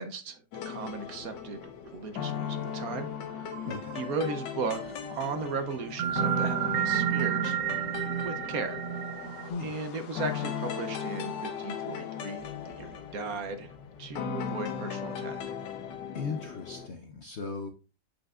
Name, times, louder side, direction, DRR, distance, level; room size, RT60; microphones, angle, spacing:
voice 1, 0.0-3.1 3.4-3.5 3.9-7.8 8.2-8.8 9.6-13.7 14.0-15.4, right 4 dB, 60° right, 8 dB, 1.2 m, -36 dB
sound 1, 0.5-16.9, left 7 dB, 90° left, 1.5 m, -37 dB
sound 2, 3.5-4.8 6.0-9.5, right 11 dB, 85° right, 1.3 m, -30 dB
voice 2, 3.6-4.1 9.5-9.7 16.1-17.7, left 4 dB, 60° left, 5 dB, 0.7 m, -37 dB
8.0 x 5.9 x 2.4 m, 0.32 s
omnidirectional pair, 1.9 m